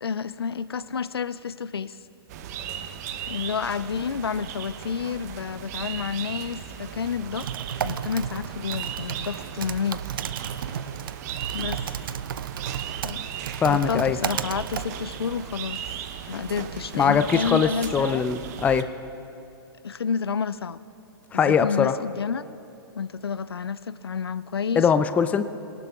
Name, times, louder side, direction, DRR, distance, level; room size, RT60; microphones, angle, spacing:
voice 1, 0.0-2.0 3.3-7.5 7.8-10.0 11.5-11.8 13.0-13.2 13.6-15.8 16.3-18.2 19.8-20.8 21.3-22.4 22.9-24.9, left 6 dB, 80° left, 15 dB, 0.4 m, -30 dB
sound 1, 2.3-18.8, right 9 dB, 40° right, 0.8 m, -37 dB
Typing, 7.2-15.4, right 8 dB, 60° right, 0.5 m, -34 dB
voice 2, 13.6-14.2 17.0-18.9 21.3-21.9 24.8-25.4, left 6 dB, 10° left, 10 dB, 0.4 m, -21 dB
23.5 x 18.5 x 2.4 m, 2.7 s
figure-of-eight pair, 120°, 13 cm